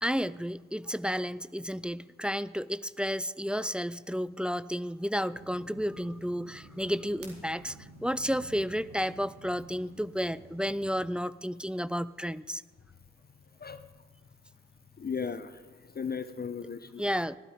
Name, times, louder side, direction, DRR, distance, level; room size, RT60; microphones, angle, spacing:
voice 1, 0.0-12.6 17.0-17.4, equal, 5° right, 16 dB, 0.4 m, -32 dB
sound 1, 5.3-11.1, right 2 dB, 80° right, 2.4 m, -51 dB
voice 2, 13.6-14.0 15.0-17.0, left 6 dB, 25° left, 12 dB, 0.8 m, -37 dB
14.5 x 12.5 x 5.0 m, 1.4 s
hypercardioid pair, 40°, 34 cm